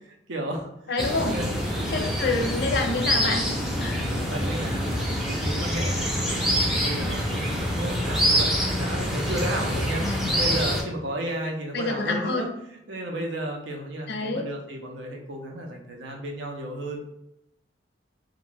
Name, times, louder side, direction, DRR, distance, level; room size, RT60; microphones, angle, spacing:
voice 1, 0.3-1.5 1.9-2.2 2.6-2.8 4.0-6.5 6.8-10.1 10.4-12.5 12.9-17.1, right 1 dB, 75° right, 2 dB, 0.5 m, -33 dB
voice 2, 0.9-1.4 1.9-3.4 3.8-4.1 10.0-10.3 11.7-12.5 14.1-14.4, left 3 dB, 60° left, 4 dB, 0.4 m, -27 dB
sound 1, 1.0-10.8, equal, ahead, 0.4 m, -26 dB
2.4 x 2.2 x 3.1 m, 0.82 s
head